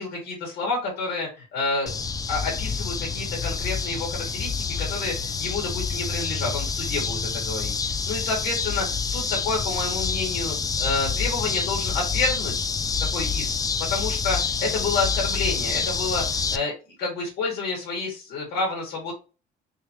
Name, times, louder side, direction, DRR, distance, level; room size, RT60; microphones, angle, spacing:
voice 1, 0.0-1.9 2.3-10.5 10.8-12.5 13.1-13.5 13.9-16.2 16.5-16.7 17.0-19.1, left 3 dB, 75° left, -3 dB, 1.9 m, -29 dB
sound 1, 1.9-16.6, left 5 dB, 20° left, 0.4 m, -27 dB
3.6 x 3.0 x 2.9 m, 0.31 s
cardioid pair, 110°, 17 cm